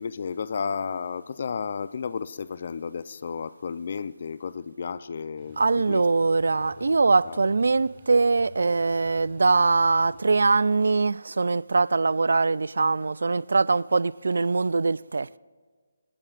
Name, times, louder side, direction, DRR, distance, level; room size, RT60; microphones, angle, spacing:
voice 1, 0.0-6.1 6.8-6.9 7.2-7.4, left 6 dB, 50° left, 0.6 m, -33 dB
sound 1, 5.4-10.5, right 3 dB, 25° right, 2.1 m, -51 dB
voice 2, 5.6-15.4, right 3 dB, 70° right, 0.3 m, -22 dB
28.0 x 18.5 x 2.5 m
figure-of-eight pair, 160°, 0 cm